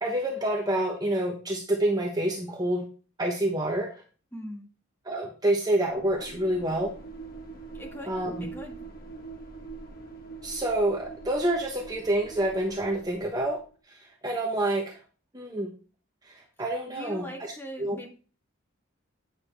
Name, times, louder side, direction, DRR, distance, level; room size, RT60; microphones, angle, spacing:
voice 1, 0.0-2.8 3.2-3.9 5.1-6.9 8.1-8.3 10.4-13.6 13.9-15.0 15.3-15.7 16.2-17.5 17.8-18.0, right 1 dB, 20° right, 0 dB, 1.0 m, -28 dB
voice 2, 4.3-4.7 7.7-8.8 16.9-18.1, equal, 10° left, -1 dB, 1.7 m, -41 dB
sound 1, 5.9-13.7, right 4 dB, 45° left, 1.3 m, -44 dB
9.0 x 6.5 x 3.4 m, 0.37 s
head